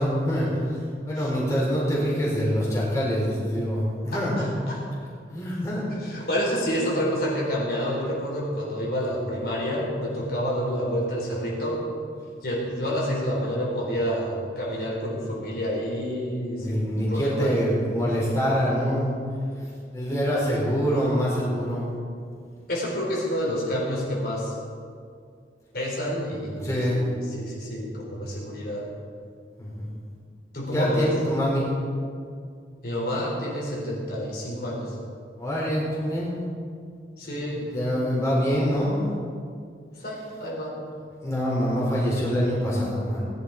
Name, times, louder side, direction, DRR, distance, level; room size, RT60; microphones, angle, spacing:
voice 1, 0.0-4.4 5.3-5.9 16.6-19.1 19.6-21.9 26.3-27.0 29.6-29.9 30.7-31.7 35.4-36.4 37.2-39.1 41.2-43.2, equal, 15° left, -6 dB, 4.2 m, -25 dB
voice 2, 4.1-4.8 6.0-11.8 12.4-17.6 22.7-24.5 25.7-28.9 30.5-31.1 32.8-34.9 37.2-37.7 40.0-40.8, equal, 60° left, -4 dB, 4.0 m, -28 dB
19.5 x 11.0 x 4.8 m, 2.2 s
head